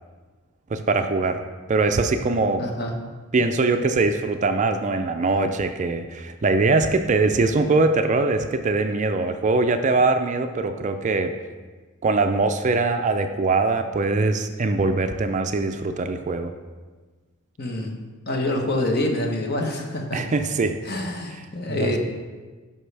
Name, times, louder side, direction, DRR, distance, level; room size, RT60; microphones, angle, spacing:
voice 1, 0.7-1.4 1.7-2.7 3.3-11.3 12.0-16.5 20.1-20.8 21.7-21.9, right 3 dB, 35° right, 7 dB, 0.4 m, -22 dB
voice 2, 2.6-3.0 17.6-17.9 18.3-20.2 20.8-22.0, left 1 dB, 45° left, 3 dB, 1.0 m, -26 dB
12.0 x 5.5 x 3.3 m, 1.4 s
head